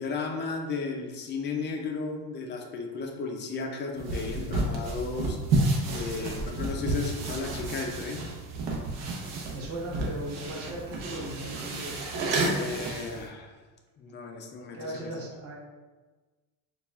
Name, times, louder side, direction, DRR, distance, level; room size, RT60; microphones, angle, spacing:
voice 1, 0.0-5.4 5.9-8.3 12.5-13.5 14.0-15.1, left 4 dB, 30° left, 3 dB, 0.4 m, -34 dB
sound 1, 4.0-13.3, right 2 dB, 80° right, 1.0 m, -31 dB
voice 2, 9.3-12.1 14.7-15.6, right 1 dB, 35° right, -3 dB, 1.0 m, -38 dB
6.8 x 2.3 x 2.3 m, 1.3 s
cardioid pair, 160°, 41 cm